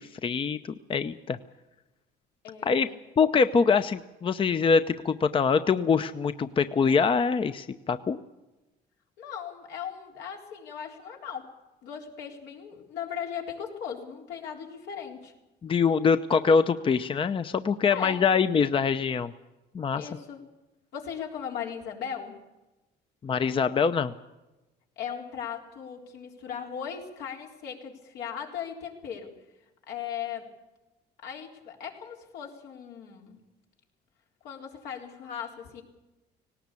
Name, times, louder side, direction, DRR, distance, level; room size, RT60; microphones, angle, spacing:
voice 1, 0.0-1.4 2.6-2.9 3.2-8.2 15.6-19.3 19.7-20.1 23.2-24.1, left 5 dB, 30° left, 11 dB, 0.7 m, -24 dB
voice 2, 2.4-3.0 9.2-11.5 11.8-15.3 17.9-18.2 19.9-20.4 20.9-22.4 25.0-29.3 29.9-30.5 31.2-33.4 34.4-35.8, left 8 dB, 85° left, 1 dB, 4.1 m, -38 dB
18.5 x 18.0 x 8.4 m, 1.0 s
cardioid pair, 110°, 17 cm